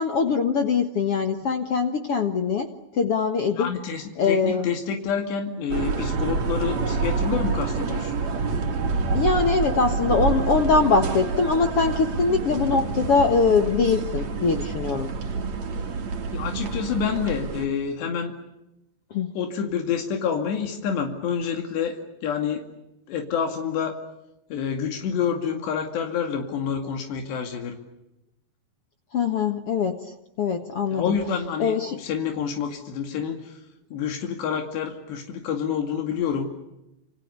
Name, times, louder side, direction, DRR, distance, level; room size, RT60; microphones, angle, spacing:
voice 1, 0.0-2.7 2.9-3.7 4.2-4.7 9.1-15.1 19.1-19.4 29.1-31.1 31.6-32.0, left 4 dB, 60° left, 7 dB, 1.5 m, -22 dB
voice 2, 3.6-8.2 16.3-18.3 19.4-22.7 23.1-23.9 24.5-27.8 30.9-33.6 33.9-36.5, left 7 dB, 85° left, 4 dB, 4.6 m, -28 dB
sound 1, 5.7-17.7, right 4 dB, 45° right, 3.4 m, -27 dB
30.0 x 28.5 x 6.9 m, 0.89 s
omnidirectional pair, 4.8 m